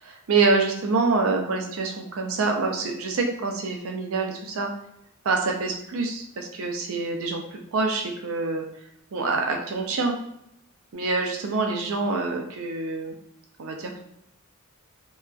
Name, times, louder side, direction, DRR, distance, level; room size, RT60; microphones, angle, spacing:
voice 1, 0.0-4.7 5.2-8.6 9.1-10.2 10.9-13.1 13.6-14.0, right 3 dB, 70° right, 2 dB, 0.5 m, -26 dB
2.8 x 2.3 x 2.2 m, 0.77 s
head